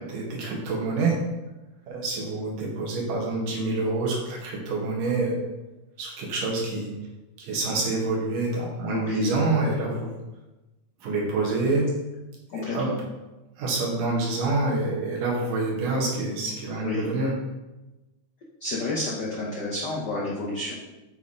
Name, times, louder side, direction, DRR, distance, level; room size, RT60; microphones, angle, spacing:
voice 1, 0.1-1.2 1.9-5.3 6.0-6.9 7.4-10.1 11.0-11.9 12.5-12.9 13.6-17.3, right 3 dB, 85° right, -2 dB, 3.2 m, -27 dB
voice 2, 8.9-9.4 12.5-12.9 16.8-17.1 18.6-20.7, left 2 dB, 80° left, -4 dB, 0.9 m, -30 dB
8.0 x 4.3 x 4.9 m, 1.1 s
omnidirectional pair, 3.6 m